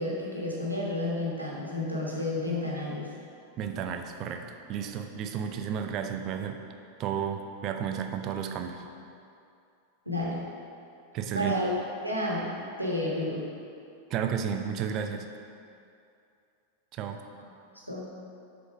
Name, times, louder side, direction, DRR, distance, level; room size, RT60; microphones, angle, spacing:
voice 1, 0.0-3.1 10.0-10.4 11.3-11.7 12.0-12.5 12.8-13.5 17.9-18.1, left 1 dB, 90° right, -5 dB, 1.4 m, -31 dB
voice 2, 3.6-6.6 7.0-8.8 11.1-11.5 14.1-15.3 16.9-17.2, right 8 dB, 35° right, 5 dB, 0.5 m, -32 dB
8.1 x 3.9 x 4.8 m, 2.5 s
figure-of-eight pair, 90°, 0 cm